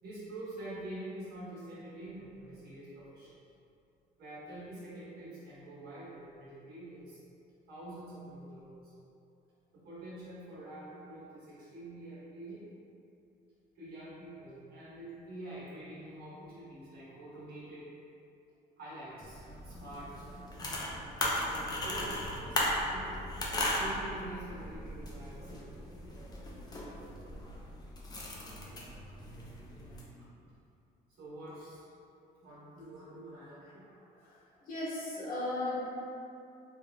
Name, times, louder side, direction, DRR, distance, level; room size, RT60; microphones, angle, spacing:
voice 1, 0.0-3.4 4.2-7.2 7.7-8.9 9.7-12.7 13.7-17.9 18.8-20.1 21.5-23.3 23.7-25.7 29.2-29.3 31.2-31.9 32.4-33.9, right 1 dB, 65° right, -9 dB, 1.2 m, -46 dB
sound 1, 19.2-30.0, left 1 dB, 25° left, 0.5 m, -37 dB
voice 2, 34.2-36.0, left 1 dB, 55° left, -7 dB, 0.9 m, -37 dB
3.4 x 2.4 x 2.2 m, 2.6 s
cardioid pair, 110°, 17 cm